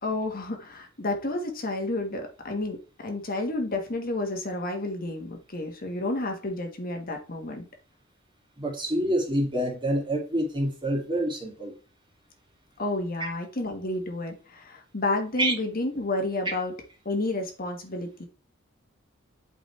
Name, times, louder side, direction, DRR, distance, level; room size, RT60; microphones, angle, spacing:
voice 1, 0.0-7.7 12.8-16.7 17.0-18.3, left 2 dB, 45° left, 1.6 m, -30 dB
voice 2, 8.6-11.7 15.4-15.5, right 1 dB, 25° right, 2.5 m, -27 dB
8.4 x 5.3 x 3.3 m
head